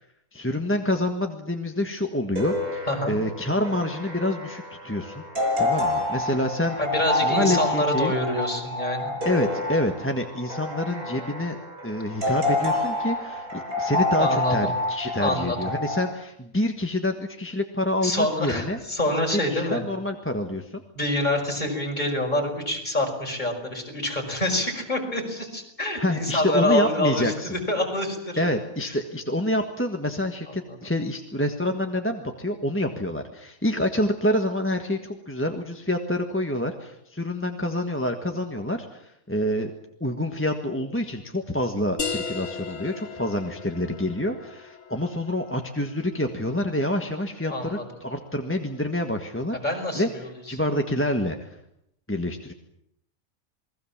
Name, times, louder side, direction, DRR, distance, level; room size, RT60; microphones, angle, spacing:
voice 1, 0.3-5.2 5.6-6.8 7.2-8.1 9.2-11.6 11.8-18.8 19.5-20.8 25.9-27.6 28.4-39.7 40.0-49.6 49.9-50.1 50.5-51.5 52.1-52.5, left 1 dB, 10° left, 4 dB, 1.5 m, -27 dB
sound 1, 2.4-16.1, left 2 dB, 80° right, 7.2 m, -28 dB
voice 2, 6.8-9.1 14.2-14.7 15.1-15.7 18.0-19.8 20.9-28.5 28.8-28.9 30.7-30.8 47.5-47.8 49.6-50.7, left 1 dB, 30° left, 2 dB, 5.8 m, -26 dB
sound 2, 42.0-47.3, left 5 dB, 60° left, 1.8 m, -37 dB
28.5 x 20.5 x 7.4 m, 0.76 s
omnidirectional pair, 1.5 m